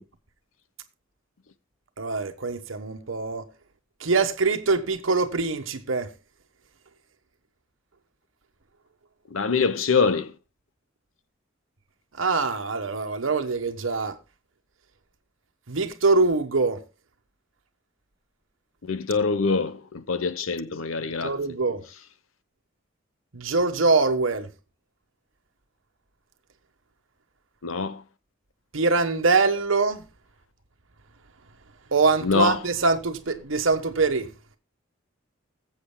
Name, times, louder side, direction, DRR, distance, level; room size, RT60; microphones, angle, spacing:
voice 1, 2.0-3.5 4.0-6.1 12.2-14.1 15.7-16.8 21.2-21.8 23.3-24.5 28.7-30.1 31.9-34.3, right 3 dB, 75° right, 1.2 m, -23 dB
voice 2, 9.3-10.3 18.8-21.4 27.6-28.0 32.2-32.6, left 4 dB, 90° left, 0.9 m, -24 dB
21.0 x 7.9 x 2.2 m
head